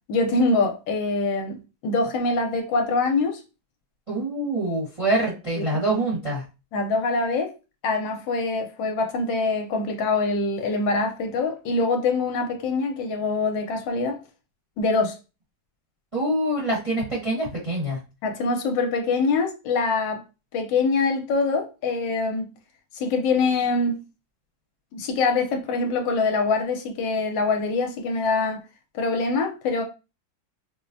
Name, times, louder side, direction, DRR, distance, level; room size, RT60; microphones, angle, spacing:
voice 1, 0.1-3.4 5.5-6.0 6.7-7.5 7.8-14.2 14.8-15.2 18.2-20.2 20.5-22.5 22.9-24.0 24.9-28.6 28.9-29.8, left 3 dB, 75° left, 1.3 m, -24 dB
voice 2, 4.1-6.4 16.1-18.0, right 1 dB, 25° right, 0.9 m, -25 dB
4.7 x 2.0 x 2.6 m
omnidirectional pair, 2.1 m